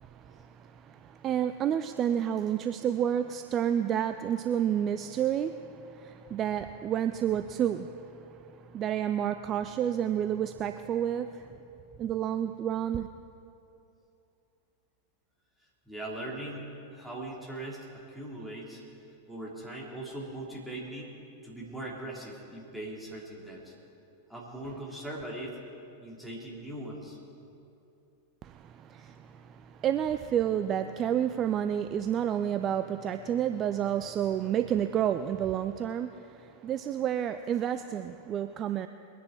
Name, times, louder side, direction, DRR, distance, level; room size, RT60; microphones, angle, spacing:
voice 1, 0.0-11.5 12.0-13.1 28.4-38.9, right 9 dB, 30° right, 10 dB, 0.4 m, -30 dB
voice 2, 15.8-18.8 19.3-21.1 21.4-23.7 24.3-25.5 26.0-27.2 29.0-29.1, right 1 dB, 5° right, -4 dB, 3.3 m, -40 dB
22.0 x 10.0 x 4.6 m, 2.7 s
figure-of-eight pair, 90°, 0 cm